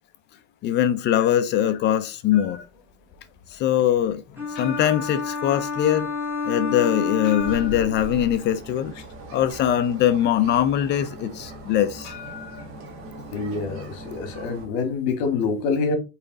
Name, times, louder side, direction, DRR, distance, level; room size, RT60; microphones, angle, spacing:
voice 1, 0.6-2.6 3.5-4.2 4.6-6.1 6.5-8.9 9.3-12.1, left 11 dB, 30° left, 0.4 m, -22 dB
sound 1, 2.3-13.7, left 6 dB, 55° left, 2.8 m, -44 dB
sound 2, 4.4-8.2, left 4 dB, 5° right, 3.5 m, -29 dB
sound 3, 7.4-14.7, right 1 dB, 35° right, 1.8 m, -39 dB
voice 2, 13.3-15.9, left 4 dB, 70° left, 2.0 m, -26 dB
5.6 x 4.8 x 3.9 m
cardioid pair, 175°, 36 cm